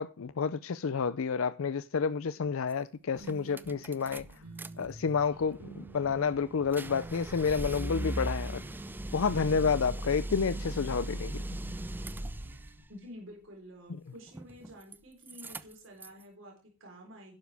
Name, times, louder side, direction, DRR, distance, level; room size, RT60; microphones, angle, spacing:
voice 1, 0.0-4.3 4.8-8.6 9.1-11.4, left 5 dB, 70° left, 0.5 m, -30 dB
sound 1, 2.7-2.8 3.1-4.7 5.0-12.8 14.3-15.0 15.2-16.2, right 1 dB, 10° right, 0.4 m, -39 dB
sound 2, 3.2-12.8, right 3 dB, 75° right, 4.3 m, -50 dB
voice 2, 12.9-17.4, equal, 60° right, 3.9 m, -50 dB
11.5 x 9.7 x 3.5 m
head